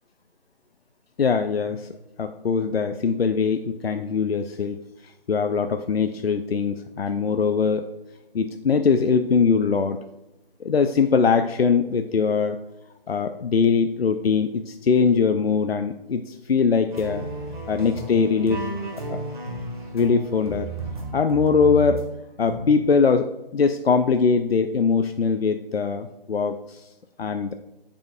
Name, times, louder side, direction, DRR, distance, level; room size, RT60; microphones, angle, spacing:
voice 1, 1.2-1.9 2.2-4.8 5.0-7.9 8.3-10.0 10.6-12.6 13.1-17.2 17.7-18.7 19.0-19.2 19.9-20.7 21.1-22.0 22.4-23.3 23.5-26.9 27.2-27.5, left 5 dB, 85° left, 8 dB, 0.5 m, -22 dB
sound 1, 16.9-22.0 22.5-22.9, right 2 dB, 55° right, 1.9 m, -33 dB
8.7 x 6.9 x 2.3 m, 0.99 s
figure-of-eight pair, 145°, 30 cm